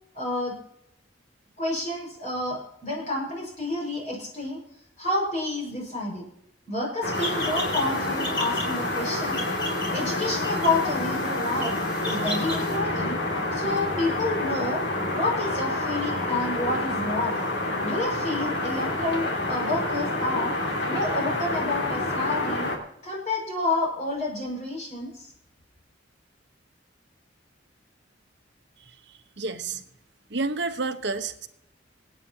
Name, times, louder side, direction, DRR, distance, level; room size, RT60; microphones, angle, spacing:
voice 1, 0.1-0.6 1.6-4.6 5.0-6.2 6.7-9.4 9.9-11.7 12.0-13.2 13.5-14.8 15.1-17.4 17.8-20.6 20.9-22.7 23.0-25.3, left 2 dB, 40° left, -2 dB, 5.4 m, -29 dB
sound 1, 7.0-22.8, left 2 dB, 65° left, 2.6 m, -28 dB
sound 2, 7.1-12.8, left 1 dB, 25° left, 4.2 m, -36 dB
voice 2, 29.4-29.8 30.3-31.5, right 3 dB, 70° right, 9 dB, 1.1 m, -29 dB
27.0 x 9.1 x 2.9 m, 0.75 s
head